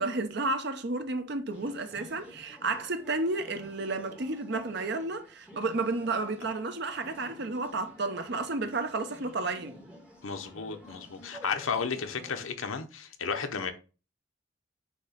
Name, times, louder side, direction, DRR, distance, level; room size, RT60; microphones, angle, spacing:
voice 1, 0.0-9.8, right 3 dB, 55° right, 0.7 m, -32 dB
sound 1, 1.5-12.4, left 1 dB, 5° right, 1.7 m, -51 dB
voice 2, 10.2-13.7, left 5 dB, 85° left, 0.9 m, -33 dB
6.3 x 2.9 x 5.6 m
head